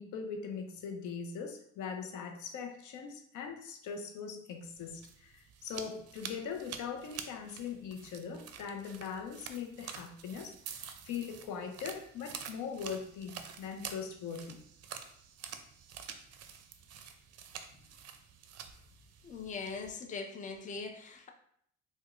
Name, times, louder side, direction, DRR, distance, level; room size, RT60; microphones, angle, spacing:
voice 1, 0.0-14.6, left 6 dB, 80° left, 4 dB, 0.5 m, -41 dB
sound 1, 4.7-19.9, right 7 dB, 55° right, 0.4 m, -48 dB
voice 2, 19.2-21.3, left 4 dB, 25° left, 4 dB, 0.4 m, -41 dB
4.6 x 2.2 x 2.4 m, 0.68 s
cardioid pair, 90°, 30 cm